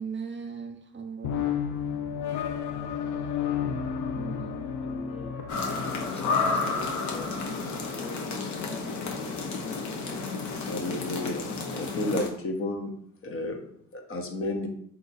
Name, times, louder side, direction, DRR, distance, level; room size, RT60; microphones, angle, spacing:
voice 1, 0.0-1.4 4.1-4.8, right 6 dB, 40° right, 6 dB, 0.6 m, -38 dB
sound 1, 1.2-8.6, left 8 dB, 90° left, 0.6 m, -33 dB
voice 2, 3.9-5.4 6.0-10.3 13.4-13.8, left 1 dB, 20° left, 4 dB, 0.8 m, -45 dB
sound 2, 5.5-12.3, left 4 dB, 70° left, 1.0 m, -31 dB
voice 3, 10.6-11.5 11.8-13.0 13.2-13.7 13.9-14.7, left 2 dB, 45° left, 3 dB, 1.0 m, -31 dB
3.9 x 3.0 x 4.0 m, 0.66 s
cardioid pair, 90°, 30 cm